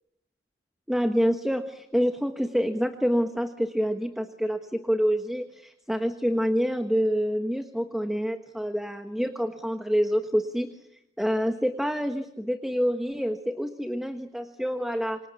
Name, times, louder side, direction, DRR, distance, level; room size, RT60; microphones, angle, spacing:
voice 1, 0.9-10.7 11.2-15.2, equal, ahead, 6 dB, 1.2 m, -27 dB
28.0 x 25.0 x 7.1 m, 0.83 s
head